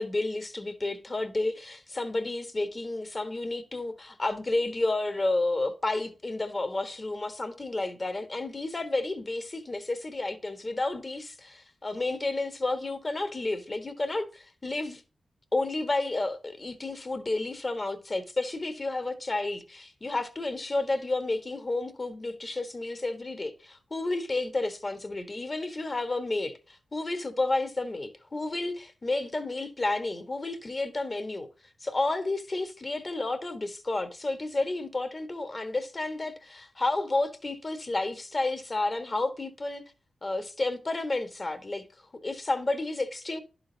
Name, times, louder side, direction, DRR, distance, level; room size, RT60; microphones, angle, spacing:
voice 1, 0.0-15.0 15.5-31.5 31.8-39.8 40.2-41.8 42.2-43.4, left 2 dB, 35° left, 1.4 m, -31 dB
11.5 x 3.9 x 4.0 m
cardioid pair, 45°, 0 cm